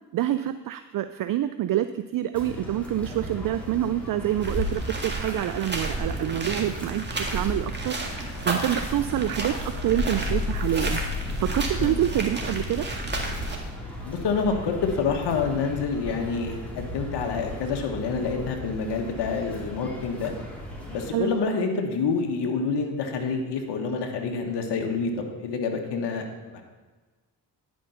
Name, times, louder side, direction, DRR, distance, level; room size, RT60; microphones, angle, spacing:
voice 1, 0.1-11.0 11.4-12.9 21.1-21.3, right 12 dB, 50° right, 12 dB, 0.5 m, -27 dB
sound 1, 2.3-21.1, left 1 dB, 5° left, 2.8 m, -35 dB
sound 2, 4.4-13.6, right 2 dB, 25° right, 1.9 m, -32 dB
voice 2, 14.0-20.3 20.9-26.6, left 5 dB, 65° left, 3 dB, 1.4 m, -27 dB
10.0 x 5.3 x 5.7 m, 1.3 s
supercardioid pair, 60°, 44 cm